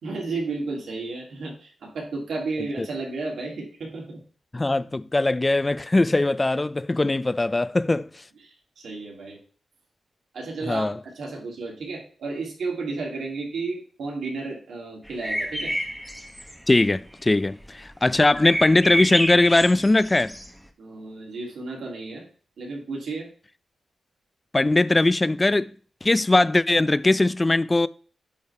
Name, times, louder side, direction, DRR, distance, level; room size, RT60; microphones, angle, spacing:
voice 1, 0.0-4.2 8.4-8.5 8.8-9.4 10.3-15.7 20.8-22.3 22.6-23.3, right 3 dB, 80° right, 2.8 m, -33 dB
voice 2, 4.5-8.2 10.7-11.0 16.7-20.4 24.5-25.7 26.0-27.9, left 2 dB, 20° left, 0.3 m, -20 dB
sound 1, 15.1-16.8 17.3-17.4 17.6-20.6, equal, ahead, 0.8 m, -29 dB
8.5 x 3.5 x 4.7 m
wide cardioid pair, 110°, 0 cm